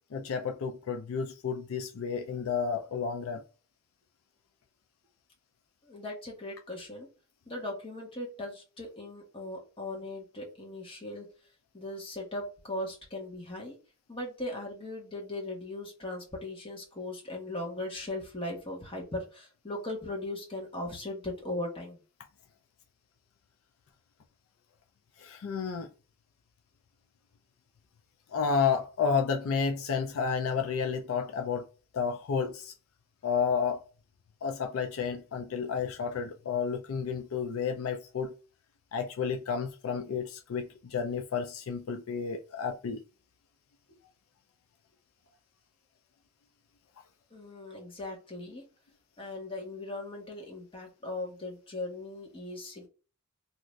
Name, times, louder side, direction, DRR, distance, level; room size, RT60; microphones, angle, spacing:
voice 1, 0.1-3.4 25.2-25.9 28.3-31.6 31.9-32.7 33.2-33.8 34.4-38.3 38.9-43.0, left 6 dB, 80° left, 0.4 m, -31 dB
voice 2, 5.8-7.1 7.5-11.3 11.7-13.8 14.1-22.0 47.3-48.6 49.2-52.9, left 1 dB, 25° left, 1.1 m, -38 dB
2.7 x 2.5 x 3.1 m
head